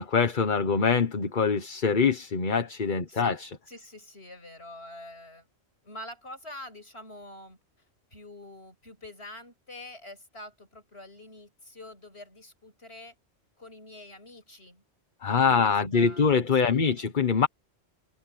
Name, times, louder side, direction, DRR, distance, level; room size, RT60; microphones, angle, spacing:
voice 1, 0.0-3.5 15.2-17.5, left 5 dB, 45° left, 1.3 m, -24 dB
voice 2, 3.7-5.5 5.8-7.6 8.1-13.1 13.6-14.8 15.3-17.1, left 1 dB, 70° left, 7.8 m, -46 dB
omnidirectional pair, 1.1 m